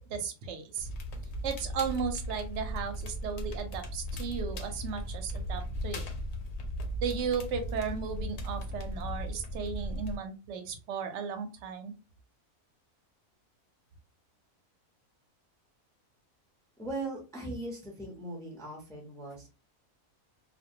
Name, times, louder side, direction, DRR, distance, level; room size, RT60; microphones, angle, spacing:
voice 1, 0.1-0.9 1.4-6.1 7.0-11.9, right 6 dB, 65° right, 7 dB, 0.8 m, -35 dB
Crackle, 0.8-10.2, equal, 65° left, 0.7 m, -37 dB
voice 2, 16.8-19.5, right 2 dB, 5° left, -1 dB, 0.3 m, -39 dB
2.2 x 2.2 x 2.6 m, 0.31 s
omnidirectional pair, 1.4 m